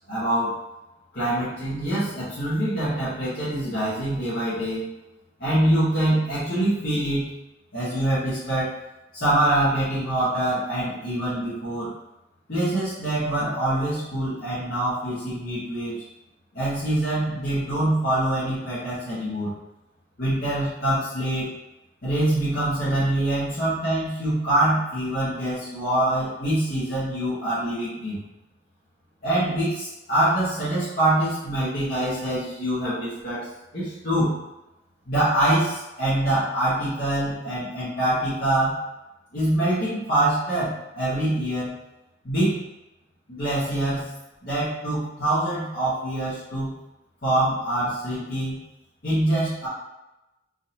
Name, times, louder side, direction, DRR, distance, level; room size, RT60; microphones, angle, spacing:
voice 1, 0.1-0.5 1.1-4.9 5.4-7.3 7.7-8.8 9.1-11.9 12.5-15.9 16.5-19.5 20.2-21.5 22.0-28.2 29.2-33.5 33.7-34.3 35.1-38.8 39.3-41.7 42.2-42.6 43.3-44.1 44.4-46.7 47.2-48.6 49.0-49.7, right 1 dB, 55° left, -13 dB, 1.3 m, -24 dB
3.8 x 2.7 x 2.8 m, 0.97 s
head